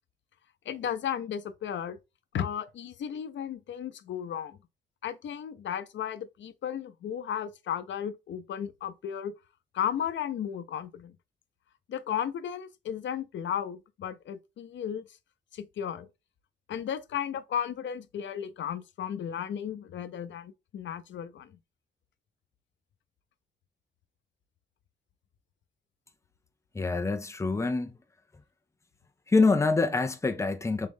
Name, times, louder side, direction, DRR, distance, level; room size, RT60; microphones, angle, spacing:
voice 1, 0.7-2.0 2.3-4.6 5.0-9.3 9.7-11.2 11.9-15.0 15.5-16.1 16.7-21.6, left 9 dB, 90° left, 0.6 m, -34 dB
voice 2, 26.7-27.9 29.3-30.9, left 3 dB, 15° left, 0.5 m, -25 dB
3.7 x 3.1 x 3.5 m
wide cardioid pair, 155°, 19 cm